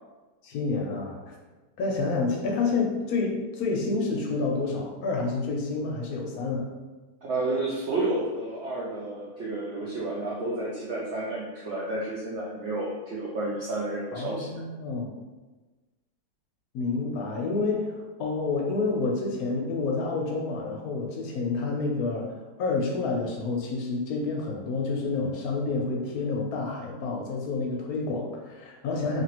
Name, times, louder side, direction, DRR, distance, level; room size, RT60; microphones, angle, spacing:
voice 1, 0.4-1.4 1.8-6.7 14.1-15.1 16.7-29.2, left 3 dB, 70° left, 0 dB, 1.0 m, -29 dB
voice 2, 7.2-14.5, right 2 dB, 75° right, -5 dB, 0.6 m, -31 dB
2.9 x 2.5 x 2.9 m, 1.2 s
omnidirectional pair, 1.7 m